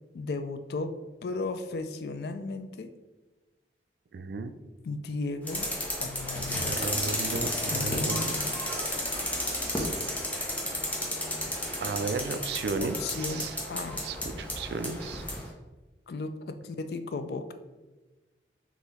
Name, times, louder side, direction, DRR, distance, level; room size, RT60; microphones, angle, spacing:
voice 1, 0.1-0.9 1.2-2.9 4.8-5.7 6.0-6.8 7.7-8.6 12.8-14.0 16.1-17.5, left 3 dB, 60° left, 10 dB, 0.3 m, -35 dB
voice 2, 4.1-4.5 6.6-8.3 9.4-9.9 11.8-13.6 14.0-15.2, right 4 dB, 65° right, 9 dB, 0.3 m, -34 dB
sound 1, 5.5-15.5, left 1 dB, 10° left, 0.7 m, -32 dB
3.8 x 3.0 x 4.1 m, 1.2 s
head